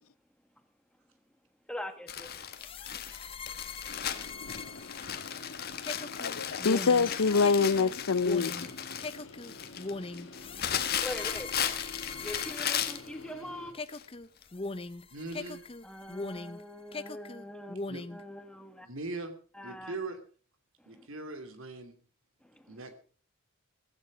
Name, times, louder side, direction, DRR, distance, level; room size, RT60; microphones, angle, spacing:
voice 1, 1.7-2.3 11.0-11.5 12.2-13.8 15.8-17.8 18.1-18.9 19.5-19.9 20.8-21.1 22.4-22.8, left 1 dB, 5° left, 1.5 m, -42 dB
Crumpling crinkling, 2.1-13.1 13.9-14.1 14.4-14.5, left 9 dB, 45° left, 1.4 m, -36 dB
sound 1, 2.5-13.4 13.7-16.6 16.9-18.2, left 3 dB, 25° left, 0.7 m, -41 dB
sound 2, 3.9-13.7, left 2 dB, 60° left, 1.5 m, -47 dB
voice 2, 6.2-8.5, left 4 dB, 80° left, 0.6 m, -25 dB
voice 3, 15.1-15.6 17.9-18.1 18.8-19.3 19.6-20.2 20.9-22.0 22.7-22.9, right 3 dB, 75° right, 2.8 m, -40 dB
16.0 x 15.0 x 5.0 m
head